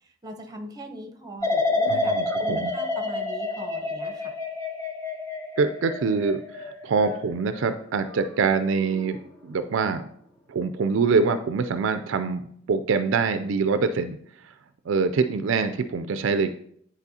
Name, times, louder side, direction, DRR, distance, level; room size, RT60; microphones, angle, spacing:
voice 1, 0.0-4.3, right 1 dB, 20° right, 5 dB, 0.8 m, -40 dB
sound 1, 1.4-8.4 8.8-9.2, left 2 dB, 15° left, 0.7 m, -29 dB
voice 2, 1.9-2.7 5.6-10.0 10.5-14.2 14.9-16.5, right 4 dB, 65° right, 10 dB, 0.4 m, -25 dB
9.7 x 4.1 x 2.8 m, 0.66 s
head